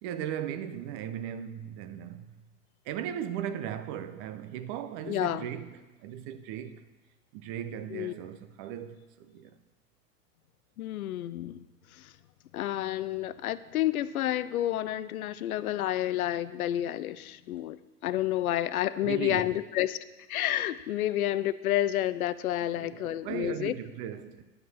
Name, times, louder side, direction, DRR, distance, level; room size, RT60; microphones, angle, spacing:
voice 1, 0.0-2.3 2.8-6.8 7.3-9.6 19.0-19.5 22.7-24.4, right 10 dB, 35° right, 0.8 m, -37 dB
voice 2, 5.0-5.4 7.9-8.1 10.8-11.7 11.9-12.1 12.5-20.0 20.3-23.7, left 13 dB, 60° left, 0.6 m, -30 dB
11.0 x 7.5 x 6.5 m
figure-of-eight pair, 95°, 48 cm